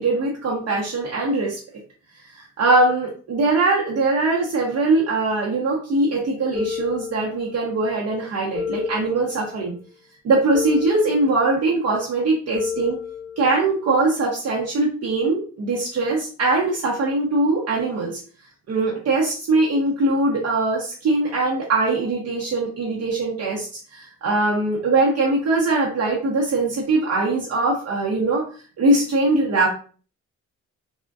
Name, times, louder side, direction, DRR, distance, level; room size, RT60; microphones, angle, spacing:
voice 1, 0.0-1.6 2.3-9.7 10.2-13.0 13.4-18.2 18.7-28.4 28.8-29.7, right 2 dB, 55° right, -3 dB, 0.7 m, -21 dB
sound 1, 6.5-7.7 8.5-9.7 10.5-11.7 12.5-13.7, left 7 dB, 55° left, 1.0 m, -31 dB
3.4 x 2.1 x 2.3 m, 0.40 s
cardioid pair, 90°, 30 cm